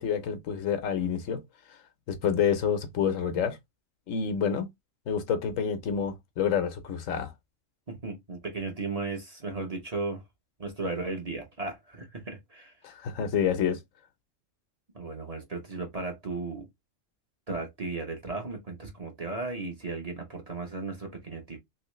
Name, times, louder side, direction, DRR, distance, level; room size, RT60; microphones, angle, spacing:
voice 1, 0.0-1.4 2.1-3.6 4.1-4.7 5.1-7.3 12.8-13.8, left 7 dB, 80° left, 1.1 m, -28 dB
voice 2, 7.9-10.2 10.6-12.7 14.9-16.7 17.5-21.6, right 3 dB, 35° right, 0.9 m, -35 dB
3.2 x 2.9 x 3.0 m
omnidirectional pair, 1.3 m